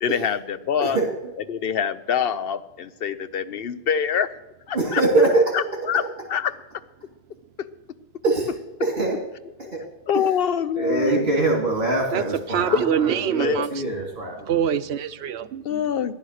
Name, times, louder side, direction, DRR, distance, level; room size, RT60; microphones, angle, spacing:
voice 1, 0.0-1.0 1.5-4.3 4.7-5.0 5.5-6.0 6.3-6.5 7.6-7.7 8.8-8.9 9.6-9.7 10.1-11.2 13.4-13.7 15.6-16.1, left 8 dB, 65° left, 14 dB, 0.9 m, -25 dB
voice 2, 0.8-1.3 4.7-5.6 8.2-8.5 8.8-9.2 9.7-9.8 10.1-10.2 10.8-14.5, right 2 dB, 60° right, 0 dB, 2.7 m, -23 dB
voice 3, 12.1-13.8 14.5-15.8, right 8 dB, 85° right, 13 dB, 1.0 m, -25 dB
14.5 x 10.5 x 6.5 m, 1.0 s
omnidirectional pair, 1.0 m